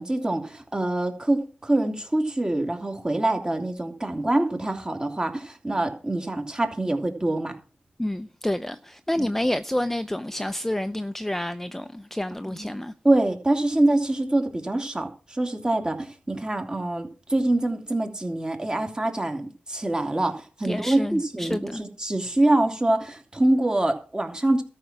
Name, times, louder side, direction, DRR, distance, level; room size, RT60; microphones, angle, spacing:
voice 1, 0.0-7.5 9.2-9.3 12.4-12.7 13.0-24.6, right 1 dB, 20° right, 2.7 m, -25 dB
voice 2, 8.0-12.9 20.6-21.8, left 1 dB, 10° left, 0.6 m, -29 dB
13.5 x 6.0 x 7.3 m
cardioid pair, 70°, 4 cm